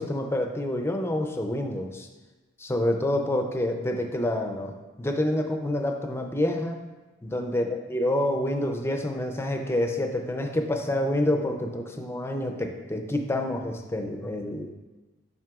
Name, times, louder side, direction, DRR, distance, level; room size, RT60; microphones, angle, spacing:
voice 1, 0.0-2.1 2.6-6.8 7.2-14.7, left 1 dB, 15° left, 4 dB, 0.4 m, -28 dB
7.4 x 5.4 x 2.4 m, 1.2 s
head